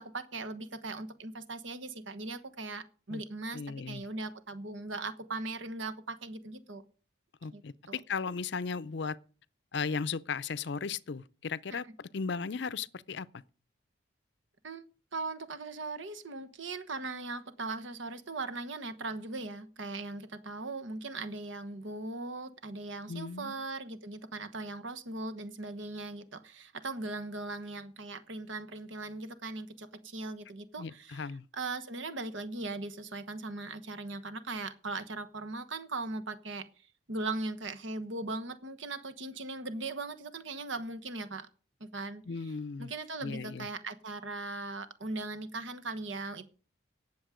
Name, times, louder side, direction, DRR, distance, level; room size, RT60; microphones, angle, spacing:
voice 1, 0.0-6.8 7.5-8.0 11.7-11.8 14.6-14.8 15.1-31.2 31.5-36.7 37.1-41.5 41.8-42.2 42.8-46.4, right 3 dB, 75° right, 1.2 m, -39 dB
voice 2, 3.5-4.1 7.4-9.2 9.7-13.3 23.1-23.6 30.8-31.5 42.3-42.9 43.2-43.7, left 5 dB, 60° left, 0.5 m, -36 dB
18.0 x 7.2 x 5.0 m
head